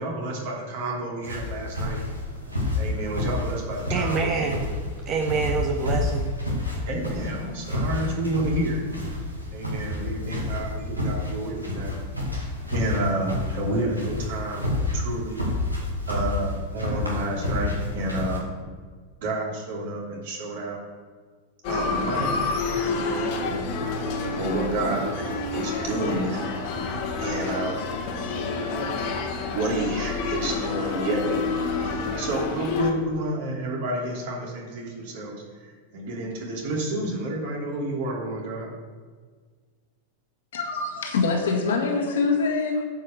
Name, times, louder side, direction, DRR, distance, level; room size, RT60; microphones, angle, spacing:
voice 1, 0.0-2.0 2.8-4.7 6.9-8.8 9.5-11.9 12.7-15.4 16.1-18.5 19.2-20.8 21.6-22.5 22.7-23.6 23.9-24.0 24.4-26.4 27.2-27.9 29.1-38.7, right 1 dB, 50° right, -2 dB, 2.8 m, -30 dB
sound 1, 1.2-18.4, left 2 dB, 85° right, 2.2 m, -29 dB
voice 2, 3.9-4.6 5.1-6.3, right 5 dB, 35° right, 3 dB, 0.8 m, -26 dB
sound 2, 21.6-32.9, left 4 dB, 45° left, 1.5 m, -28 dB
voice 3, 40.5-42.8, left 4 dB, 60° left, 2 dB, 1.8 m, -24 dB
9.3 x 5.6 x 6.5 m, 1.5 s
figure-of-eight pair, 90°, 0 cm